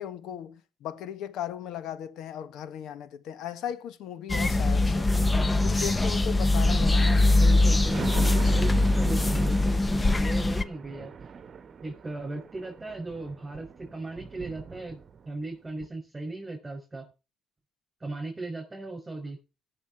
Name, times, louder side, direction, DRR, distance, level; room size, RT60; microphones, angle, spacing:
voice 1, 0.0-5.1 5.6-7.1, left 10 dB, 90° left, 1.3 m, -37 dB
sound 1, 4.3-10.6, left 2 dB, 20° left, 0.9 m, -22 dB
voice 2, 6.6-11.1 11.8-17.0 18.0-19.4, right 2 dB, 20° right, 6.2 m, -38 dB
Thunder, 7.2-15.4 15.8-15.9, right 6 dB, 50° right, 1.2 m, -40 dB
18.5 x 6.7 x 4.4 m
cardioid pair, 90°, 0 cm